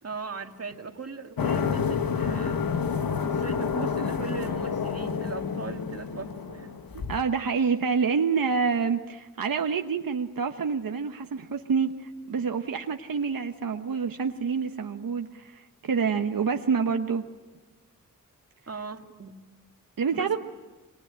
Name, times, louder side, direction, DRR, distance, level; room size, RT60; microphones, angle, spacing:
voice 1, 0.0-2.7 3.2-6.8 18.7-19.3 20.1-20.4, right 4 dB, 45° right, 5 dB, 2.1 m, -38 dB
sound 1, 1.4-7.2, left 6 dB, 90° left, 1.4 m, -29 dB
voice 2, 6.9-17.2 20.0-20.4, right 5 dB, 80° right, 5 dB, 1.1 m, -27 dB
27.5 x 23.0 x 8.9 m, 1.2 s
wide cardioid pair, 95°, 34 cm